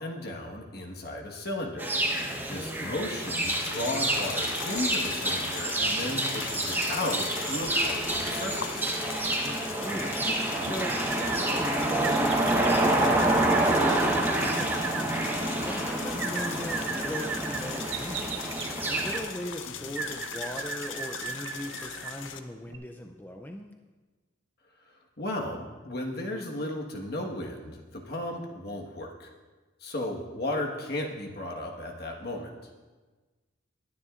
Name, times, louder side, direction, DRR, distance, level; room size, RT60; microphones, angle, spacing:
voice 1, 0.0-2.2 2.5-8.9 19.7-19.8 25.2-29.3 29.8-32.7, left 1 dB, 55° left, 0 dB, 1.5 m, -35 dB
sound 1, 1.8-19.2, right 1 dB, 10° right, 1.0 m, -28 dB
voice 2, 2.3-3.2 9.4-10.3 10.6-15.1 15.6-18.4 18.9-23.7, left 1 dB, 10° left, 3 dB, 0.4 m, -39 dB
sound 2, 3.1-22.4, left 7 dB, 90° left, 0.7 m, -39 dB
sound 3, 10.3-11.4 12.0-15.1 16.2-19.3 20.0-22.2 22.7-22.8, right 6 dB, 70° right, 0.8 m, -37 dB
20.0 x 9.8 x 2.5 m, 1.3 s
head